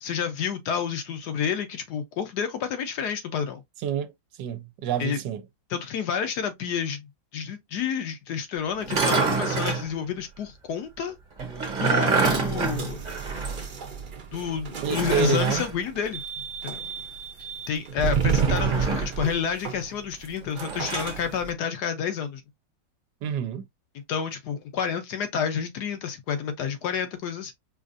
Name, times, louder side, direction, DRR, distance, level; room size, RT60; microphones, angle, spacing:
voice 1, 0.0-3.6 5.0-5.2 5.7-11.2 11.8-13.0 14.3-16.2 16.6-16.8 17.7-22.4 24.1-27.5, left 7 dB, 70° left, 1.2 m, -29 dB
voice 2, 4.4-5.4 14.8-15.7 23.2-23.6, right 8 dB, 75° right, 1.2 m, -28 dB
sound 1, 8.8-9.9 11.4-13.7 13.9-14.0 14.8-15.7 18.2-19.2 20.6-21.2, right 4 dB, 35° right, 1.0 m, -26 dB
sound 2, 12.2-21.5, right 7 dB, 50° right, 0.6 m, -31 dB
4.9 x 2.5 x 2.5 m
omnidirectional pair, 2.0 m